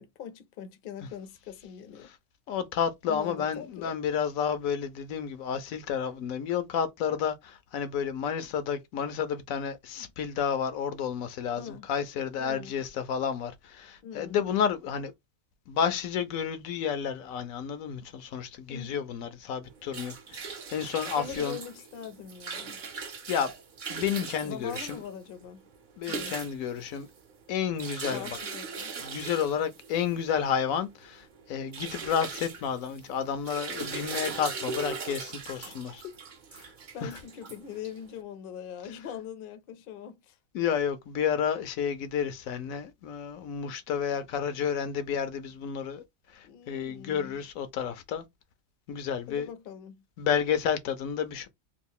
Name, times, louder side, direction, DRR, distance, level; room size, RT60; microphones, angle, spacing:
voice 1, 0.0-2.1 3.1-3.9 10.0-10.1 11.6-11.9 12.4-12.7 14.0-14.5 18.7-19.0 21.1-22.8 24.4-25.6 26.1-26.4 28.1-28.9 33.7-34.1 35.5-35.8 36.0-36.1 36.9-40.4 46.4-47.4 49.3-50.0, left 8 dB, 55° left, 0.6 m, -42 dB
voice 2, 2.5-15.1 15.7-21.6 23.3-23.5 23.9-25.0 26.0-27.1 27.5-28.4 29.0-36.0 37.0-37.2 40.5-46.0 46.3-48.2 48.9-49.5 50.2-51.5, left 7 dB, 80° left, 1.0 m, -31 dB
sound 1, 19.6-38.2, right 5 dB, 50° right, 0.6 m, -40 dB
2.9 x 2.4 x 3.6 m
omnidirectional pair, 1.5 m